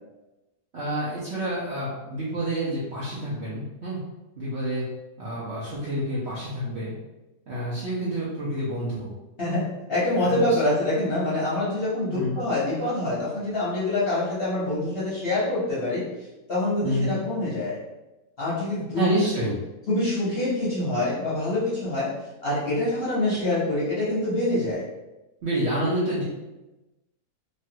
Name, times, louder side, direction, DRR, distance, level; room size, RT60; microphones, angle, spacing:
voice 1, 0.7-4.0 4.4-4.8 5.2-6.9 7.5-9.1 9.4-9.6 10.2-10.5 12.1-12.4 16.8-17.2 19.0-19.5 25.4-26.2, right 1 dB, 55° right, -9 dB, 0.8 m, -28 dB
voice 2, 9.9-16.0 16.5-17.8 18.4-19.1 19.4-19.5 19.9-22.1 22.4-24.8, left 1 dB, 45° left, -9 dB, 0.9 m, -25 dB
3.1 x 2.3 x 2.8 m, 1.0 s
omnidirectional pair, 1.8 m